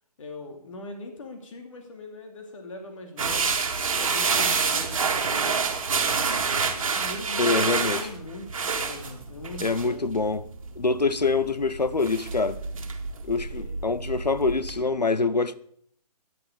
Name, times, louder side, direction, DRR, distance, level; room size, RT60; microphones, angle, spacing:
voice 1, 0.2-3.6 4.0-5.7 6.8-10.1 13.5-13.8, left 2 dB, 50° left, 2.8 m, -41 dB
sound 1, 3.2-14.8, right 5 dB, 55° right, 1.8 m, -28 dB
voice 2, 7.4-8.0 9.6-10.4 10.8-12.6 13.2-15.5, left 3 dB, 90° left, 0.7 m, -25 dB
14.0 x 10.5 x 3.9 m
figure-of-eight pair, 135°, 20 cm